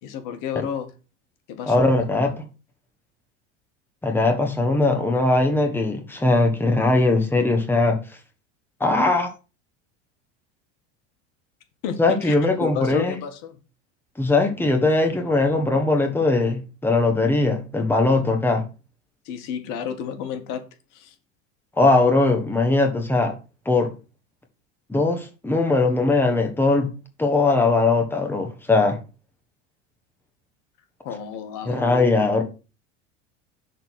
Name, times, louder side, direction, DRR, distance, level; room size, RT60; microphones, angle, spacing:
voice 1, 0.0-0.9 1.5-2.0 11.8-12.3 12.6-13.6 19.2-20.6 20.9-21.1 31.0-32.2, left 8 dB, 55° left, 1.7 m, -31 dB
voice 2, 1.7-2.4 4.0-8.0 8.8-9.3 12.0-13.2 14.2-18.6 21.8-23.3 23.6-23.9 24.9-26.9 27.2-29.0 31.7-32.4, left 2 dB, 5° left, 1.5 m, -20 dB
6.5 x 4.0 x 6.3 m
hypercardioid pair, 100°, 37 cm